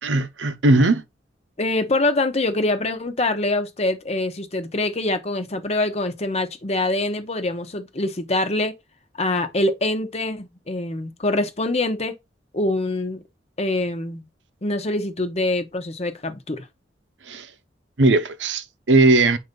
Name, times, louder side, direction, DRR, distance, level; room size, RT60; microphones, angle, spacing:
voice 1, 0.0-1.0 17.3-17.5 18.0-19.4, right 2 dB, 90° right, 0.8 m, -18 dB
voice 2, 1.6-8.7 9.2-12.1 12.5-13.2 13.6-14.2 14.6-16.7, left 2 dB, 35° left, 1.0 m, -24 dB
7.6 x 2.8 x 5.2 m
head